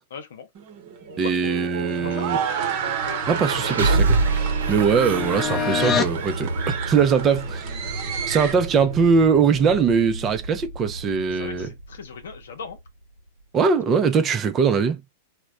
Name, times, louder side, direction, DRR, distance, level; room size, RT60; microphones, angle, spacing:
voice 1, 0.1-0.5 1.2-1.3 2.0-2.6 11.3-12.8, left 6 dB, 70° left, 0.7 m, -38 dB
sound 1, 0.5-8.5, right 8 dB, 50° right, 0.8 m, -32 dB
sound 2, 0.8-12.9, right 3 dB, 80° right, 0.9 m, -28 dB
voice 2, 1.2-2.4 3.3-7.7 8.3-11.7 13.5-15.0, right 6 dB, 30° right, 0.4 m, -21 dB
sound 3, 3.0-6.2, left 7 dB, 25° left, 0.5 m, -28 dB
2.2 x 2.0 x 3.6 m
hypercardioid pair, 100°, 0 cm